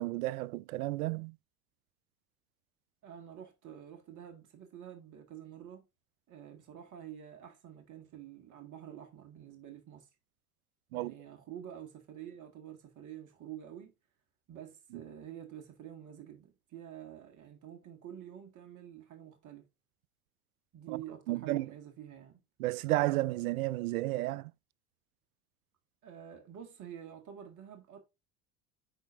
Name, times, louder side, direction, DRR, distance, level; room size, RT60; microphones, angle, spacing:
voice 1, 0.0-1.4 10.9-11.1 21.3-21.7 22.6-24.5, right 18 dB, 65° right, 0.5 m, -32 dB
voice 2, 3.0-5.8 6.3-10.1 10.9-13.9 14.5-19.6 20.7-22.4 26.0-28.0, right 10 dB, 40° right, 1.8 m, -48 dB
10.0 x 4.1 x 2.6 m
hypercardioid pair, 80°, 46 cm